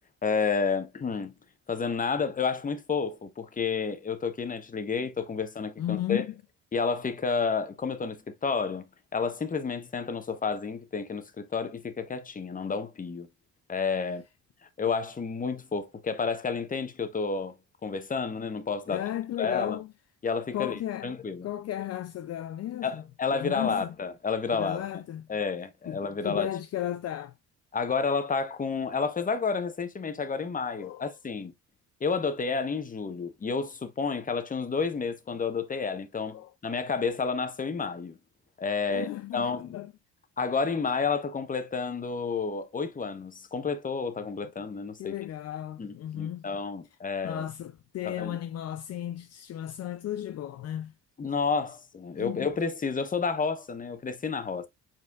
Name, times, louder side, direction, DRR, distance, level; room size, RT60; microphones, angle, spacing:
voice 1, 0.2-1.3 1.7-6.2 6.7-8.8 9.1-13.3 13.7-14.2 14.8-17.5 17.8-19.0 19.4-19.8 20.2-21.5 22.8-24.8 25.3-26.5 27.7-31.5 32.0-38.2 38.6-39.7 40.4-45.1 45.8-47.5 48.0-48.4 51.2-54.7, left 5 dB, 25° left, 0.9 m, -30 dB
voice 2, 5.8-6.3 18.9-19.9 20.5-21.1 21.4-23.0 23.3-24.0 24.5-25.3 25.9-27.3 30.8-31.1 36.3-36.5 38.9-39.9 45.0-46.5 47.2-50.9 52.2-52.5, left 12 dB, 55° left, 0.5 m, -34 dB
5.0 x 4.3 x 2.4 m
cardioid pair, 90°, 30 cm